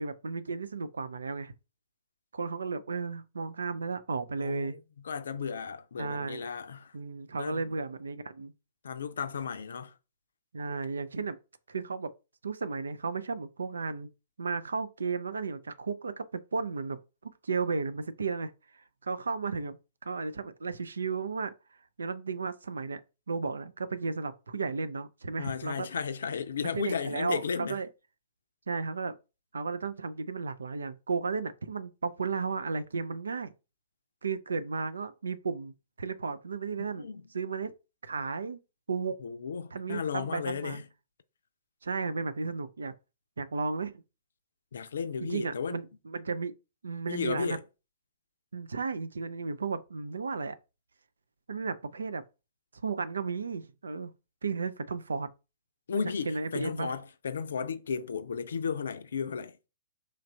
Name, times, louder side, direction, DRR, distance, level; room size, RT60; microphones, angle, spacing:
voice 1, 0.0-1.5 2.3-4.8 6.0-6.4 6.9-8.5 10.5-11.4 11.7-12.1 12.4-14.1 14.4-17.0 17.4-19.8 20.0-21.5 22.0-23.0 23.3-25.9 26.7-27.9 28.7-29.2 29.5-33.5 34.2-37.1 37.3-37.7 38.0-38.6 38.9-39.2 39.7-40.8 41.8-42.9 43.4-44.0 45.2-46.5 46.8-47.6 48.5-50.6 51.5-52.2 52.8-54.1 54.4-55.3 55.9-56.9, right 4 dB, 70° right, 0.4 m, -34 dB
voice 2, 4.4-4.8 5.0-6.9 7.4-7.7 8.8-9.9 25.4-27.8 36.9-37.3 39.2-40.9 44.7-45.8 47.1-47.6 55.9-59.6, left 6 dB, 60° left, 0.5 m, -34 dB
3.1 x 2.4 x 4.2 m
figure-of-eight pair, 115°, 0 cm